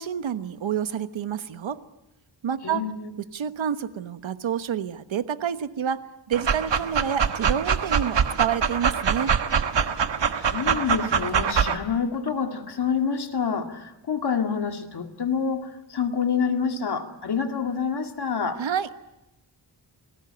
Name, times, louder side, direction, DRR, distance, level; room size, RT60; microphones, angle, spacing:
voice 1, 0.0-1.8 2.4-2.8 3.2-6.0 6.3-9.3 18.6-19.0, right 8 dB, 90° right, 11 dB, 1.3 m, -28 dB
voice 2, 2.6-3.1 10.4-18.6, left 6 dB, 60° left, 5 dB, 2.4 m, -27 dB
Dog, 6.3-11.8, right 6 dB, 70° right, 1.4 m, -24 dB
28.5 x 19.5 x 8.8 m, 0.95 s
wide cardioid pair, 125°, 45 cm